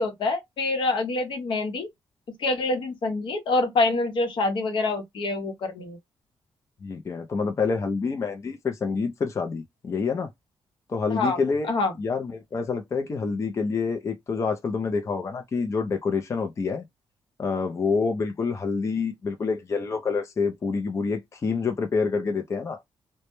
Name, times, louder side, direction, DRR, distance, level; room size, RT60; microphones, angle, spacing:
voice 1, 0.0-1.9 2.3-6.0 11.1-11.4 11.7-11.9, left 2 dB, 65° left, 0.8 m, -26 dB
voice 2, 6.8-10.3 10.9-11.7 12.0-16.8 17.4-22.8, left 4 dB, 35° left, 0.4 m, -27 dB
2.1 x 2.1 x 2.9 m
cardioid pair, 100°, 9 cm